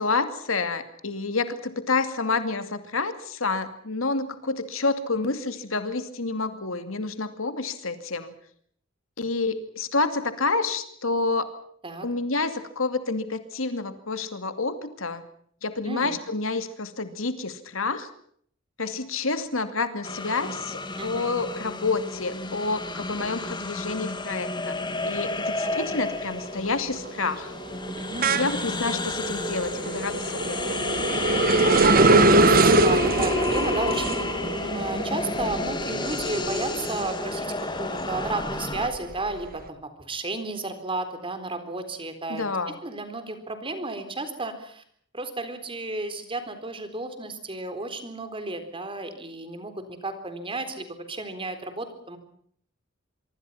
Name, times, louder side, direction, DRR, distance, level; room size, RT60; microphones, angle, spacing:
voice 1, 0.0-8.3 9.2-11.5 12.0-15.2 15.6-18.1 18.8-24.8 25.0-27.5 28.3-30.8 42.3-42.8, left 3 dB, 85° left, 9 dB, 2.5 m, -28 dB
sound 1, 20.0-38.9, left 2 dB, 20° left, 2.0 m, -31 dB
voice 2, 21.0-21.3 25.6-25.9 28.0-28.4 31.9-42.5 42.8-44.8 45.1-52.2, right 2 dB, 25° right, 9 dB, 4.0 m, -33 dB
sound 2, 25.3-25.7 26.1-37.3 37.8-39.5, right 3 dB, 45° right, 1.6 m, -23 dB
25.0 x 24.5 x 5.8 m, 0.62 s
head